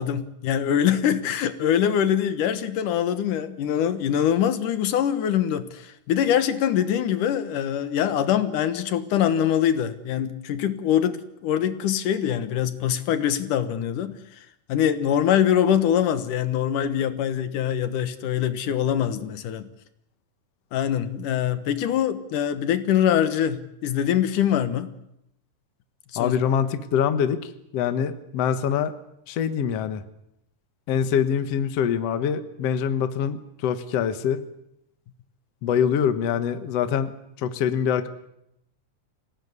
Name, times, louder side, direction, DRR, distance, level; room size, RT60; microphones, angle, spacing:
voice 1, 0.0-14.2 14.7-19.7 20.7-24.9 26.2-26.4, left 9 dB, 75° left, 12 dB, 2.8 m, -23 dB
voice 2, 26.2-28.9 29.3-30.0 30.9-34.4 35.6-37.1 37.4-38.1, left 8 dB, 60° left, 10 dB, 2.1 m, -24 dB
26.5 x 17.5 x 9.7 m, 0.80 s
omnidirectional pair, 3.7 m